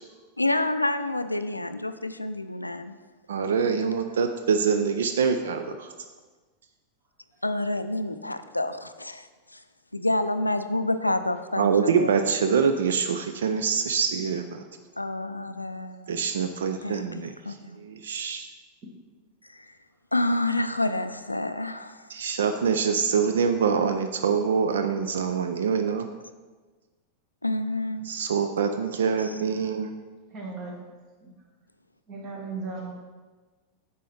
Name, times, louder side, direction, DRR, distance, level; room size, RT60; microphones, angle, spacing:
voice 1, 0.4-3.0 7.4-9.6 9.9-12.2 15.0-16.1 16.8-17.8 19.5-19.7 20.1-22.0 27.4-28.1 29.2-29.4, left 2 dB, 85° left, 11 dB, 0.3 m, -28 dB
voice 2, 3.3-5.9 11.6-14.6 16.1-17.3 17.8-18.5 22.1-26.1 28.1-29.9, right 6 dB, 65° right, 7 dB, 0.4 m, -25 dB
voice 3, 30.3-30.8 31.2-31.3 32.1-32.9, right 4 dB, 35° right, 0 dB, 1.5 m, -36 dB
9.0 x 5.4 x 3.3 m, 1.3 s
figure-of-eight pair, 90°, 0 cm